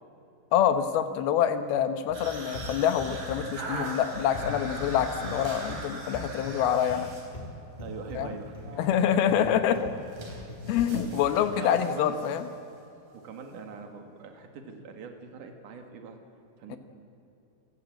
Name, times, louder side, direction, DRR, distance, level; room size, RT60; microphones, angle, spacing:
voice 1, 0.5-7.1 8.1-8.3 8.8-9.9 10.7-12.5 16.7-16.8, left 9 dB, 85° left, 10 dB, 3.0 m, -26 dB
sound 1, 2.1-11.7, left 1 dB, 45° left, 0.5 m, -42 dB
sound 2, 2.1-7.3 7.8-8.2 8.5-12.5, right 2 dB, 85° right, 5.8 m, -41 dB
sound 3, 4.1-7.8, left 1 dB, 25° right, 3.6 m, -50 dB
voice 2, 4.7-5.2 7.8-8.6 8.9-9.1 10.9-11.0 11.3-12.2 13.1-16.2 16.6-16.8, right 5 dB, 60° right, 5 dB, 3.4 m, -43 dB
27.5 x 17.0 x 7.8 m, 3.0 s
omnidirectional pair, 4.3 m